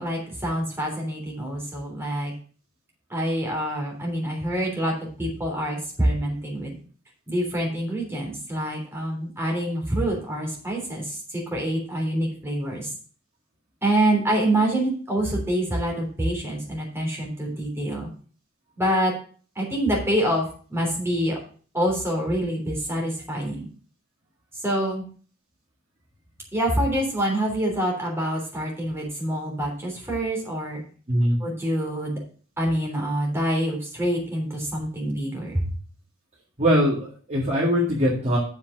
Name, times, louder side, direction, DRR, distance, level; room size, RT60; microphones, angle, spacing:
voice 1, 0.0-2.3 3.1-6.8 7.3-11.2 11.5-12.9 13.8-18.1 18.8-19.1 19.5-21.4 21.7-23.7 24.6-25.0 26.5-30.8 31.4-32.2 32.6-35.6, right 1 dB, 10° right, -2 dB, 3.3 m, -26 dB
voice 2, 36.6-38.4, equal, 35° right, -6 dB, 2.1 m, -21 dB
7.0 x 5.3 x 7.3 m, 0.42 s
head